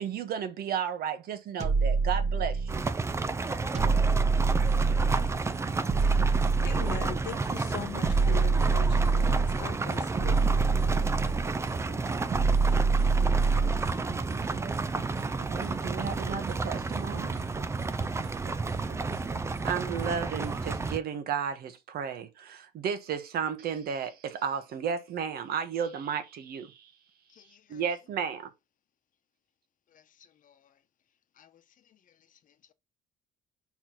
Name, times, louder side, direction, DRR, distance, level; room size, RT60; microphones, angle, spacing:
voice 1, 0.0-2.8 15.5-17.4 19.6-26.9 27.7-28.5, right 7 dB, 65° right, 1.3 m, -33 dB
sound 1, 1.6-2.9 3.7-5.4 5.9-7.3 8.0-9.6 10.2-11.6 12.3-13.9, right 4 dB, 40° right, 1.4 m, -25 dB
sound 2, 2.7-21.0, right 3 dB, 15° right, 0.4 m, -31 dB
sound 3, 4.7-20.9, right 7 dB, 85° right, 1.1 m, -46 dB
voice 2, 6.6-10.4, left 10 dB, 90° left, 1.6 m, -40 dB
voice 3, 27.3-27.8 29.9-30.8 31.4-32.7, left 9 dB, 50° left, 1.0 m, -62 dB
4.7 x 4.3 x 5.8 m
cardioid pair, 110°, 17 cm